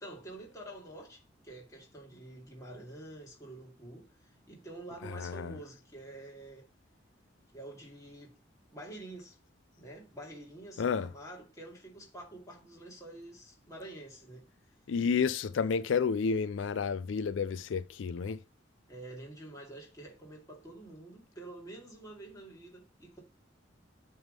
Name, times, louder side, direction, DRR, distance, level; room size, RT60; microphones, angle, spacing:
voice 1, 0.0-6.7 7.5-8.3 8.7-9.4 9.8-14.5 18.9-23.2, right 1 dB, 20° left, 2.3 m, -48 dB
voice 2, 5.0-5.5 10.8-11.1 14.9-18.4, left 5 dB, 85° left, 0.4 m, -30 dB
8.0 x 3.6 x 5.3 m
head